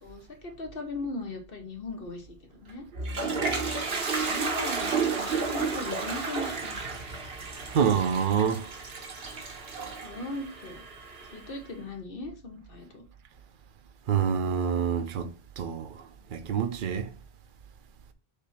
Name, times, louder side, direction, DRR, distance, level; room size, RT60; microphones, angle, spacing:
voice 1, 0.0-2.8 4.2-6.8 10.0-10.8 11.3-13.0, left 3 dB, 65° left, 1.4 m, -38 dB
Toilet flush, 2.7-11.6, right 4 dB, 75° right, 1.4 m, -32 dB
voice 2, 7.7-8.7 14.1-17.1, right 7 dB, 55° right, 0.9 m, -27 dB
6.7 x 2.9 x 5.8 m
omnidirectional pair, 1.0 m